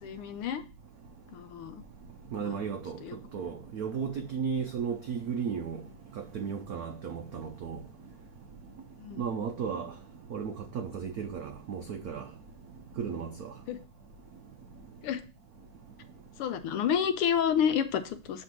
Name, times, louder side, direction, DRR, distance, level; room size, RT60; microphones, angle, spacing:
voice 1, 0.0-0.6 1.3-1.8 2.4-2.6 3.0-3.2 9.0-9.2 13.7-13.8 15.0-15.2 16.4-18.4, left 8 dB, 85° left, 1.6 m, -29 dB
voice 2, 2.3-3.0 3.3-5.8 6.2-7.8 9.2-9.9 10.3-12.2 13.0-13.5, right 6 dB, 85° right, 0.8 m, -34 dB
7.2 x 3.4 x 6.0 m
omnidirectional pair, 2.4 m